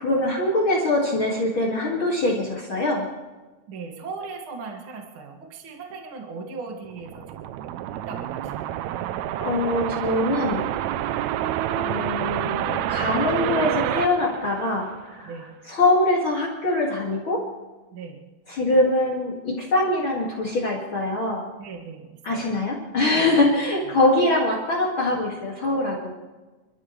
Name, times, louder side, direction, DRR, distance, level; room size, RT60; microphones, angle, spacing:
voice 1, 0.0-3.1 9.4-10.6 11.7-15.3 15.7-17.4 18.5-21.4 22.2-26.1, left 2 dB, 40° left, -3 dB, 2.6 m, -23 dB
voice 2, 3.7-7.6 7.9-9.1 15.2-15.5 17.9-18.2 19.0-19.1 21.6-22.6 23.1-23.5 23.8-23.9, right 4 dB, 45° right, 2 dB, 2.5 m, -39 dB
sound 1, 6.9-15.2, right 12 dB, 80° right, 1.6 m, -28 dB
28.0 x 13.5 x 3.2 m, 1.2 s
omnidirectional pair, 3.7 m